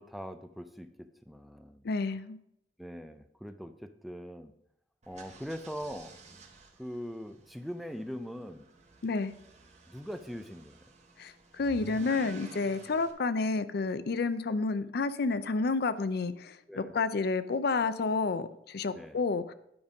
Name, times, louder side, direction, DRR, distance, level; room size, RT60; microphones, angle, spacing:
voice 1, 0.0-1.8 2.8-4.5 5.1-6.4 6.8-8.7 9.9-10.8 12.9-13.0 16.7-17.0 18.9-19.2, equal, ahead, 8 dB, 0.4 m, -42 dB
voice 2, 1.8-2.4 9.0-9.3 11.2-19.5, left 4 dB, 60° left, 13 dB, 0.5 m, -30 dB
sound 1, 5.0-13.1, right 3 dB, 40° right, 1.1 m, -52 dB
9.6 x 5.2 x 5.2 m, 0.78 s
head